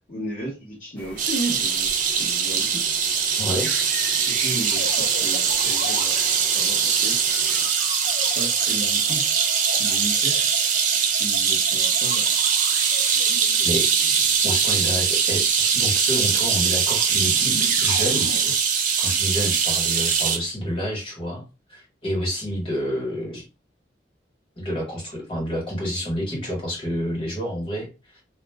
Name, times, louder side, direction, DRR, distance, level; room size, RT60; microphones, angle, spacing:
voice 1, 0.1-2.8 4.1-6.2 6.5-7.2 8.4-9.4 9.8-10.5 11.1-12.3, right 1 dB, 45° left, -6 dB, 0.8 m, -34 dB
sound 1, 1.0-7.7, left 1 dB, 10° left, 0.6 m, -41 dB
sound 2, 1.2-20.4, right 6 dB, 45° right, 0.4 m, -22 dB
voice 2, 3.4-3.7 13.6-13.9 14.4-18.3 19.0-21.4 21.7-23.4 24.6-28.2, equal, 30° left, -2 dB, 1.3 m, -29 dB
sound 3, 4.7-16.1 17.1-18.5, left 4 dB, 85° left, 0.5 m, -39 dB
2.4 x 2.0 x 3.3 m, 0.28 s
head